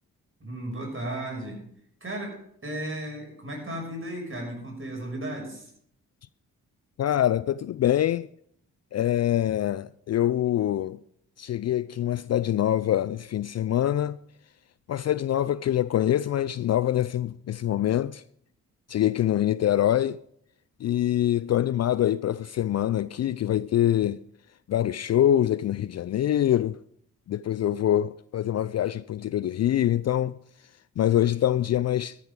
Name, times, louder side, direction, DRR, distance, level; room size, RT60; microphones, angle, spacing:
voice 1, 0.4-1.6 2.0-5.7, right 1 dB, 35° right, 6.4 m, -35 dB
voice 2, 7.0-8.3 8.9-11.0 11.4-14.2 14.9-18.2 18.9-20.2 20.8-24.2 24.7-26.8 27.3-30.4 31.0-32.2, left 11 dB, 45° left, 0.4 m, -24 dB
13.0 x 12.0 x 3.7 m
hypercardioid pair, 40°, 37 cm